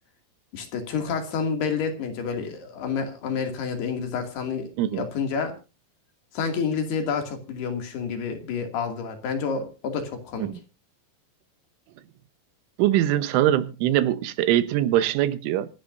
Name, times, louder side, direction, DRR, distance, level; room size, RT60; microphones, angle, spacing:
voice 1, 0.5-5.5 6.3-10.5, left 5 dB, 60° left, 4.3 m, -29 dB
voice 2, 12.8-15.7, right 12 dB, 85° right, 3.5 m, -22 dB
25.5 x 11.0 x 2.7 m
omnidirectional pair, 5.4 m